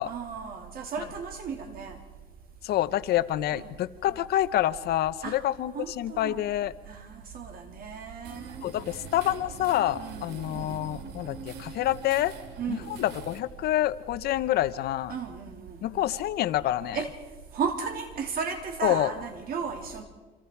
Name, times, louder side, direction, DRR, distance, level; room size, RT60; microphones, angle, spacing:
voice 1, 0.0-2.0 3.5-3.8 5.2-5.4 5.7-6.4 6.9-8.6 10.0-10.8 12.6-12.9 15.1-15.8 16.9-17.1 17.5-20.0, right 6 dB, 60° right, 5 dB, 3.3 m, -35 dB
voice 2, 2.6-6.7 8.6-12.3 12.7-15.1 15.8-17.0 18.8-19.1, left 13 dB, 70° left, 13 dB, 0.9 m, -27 dB
sound 1, 8.2-13.4, right 5 dB, 85° right, 2.7 m, -44 dB
29.0 x 25.0 x 4.7 m, 1.3 s
cardioid pair, 110°, 17 cm